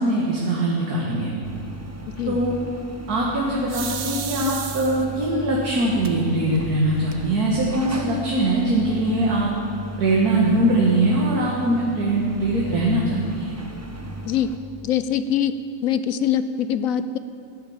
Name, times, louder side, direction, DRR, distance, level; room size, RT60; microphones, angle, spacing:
voice 1, 0.0-1.3 2.3-2.5 3.1-9.5 10.0-13.5, right 1 dB, 75° right, -3 dB, 2.3 m, -22 dB
sound 1, 1.4-14.6, right 1 dB, 15° right, 0.5 m, -36 dB
sound 2, 3.7-5.3 6.0-6.1 6.6-6.7 6.9-7.5, right 7 dB, 50° right, 0.9 m, -32 dB
voice 2, 14.8-15.5 15.8-17.2, left 9 dB, 70° left, 12 dB, 0.9 m, -23 dB
16.0 x 9.6 x 7.2 m, 2.5 s
omnidirectional pair, 1.6 m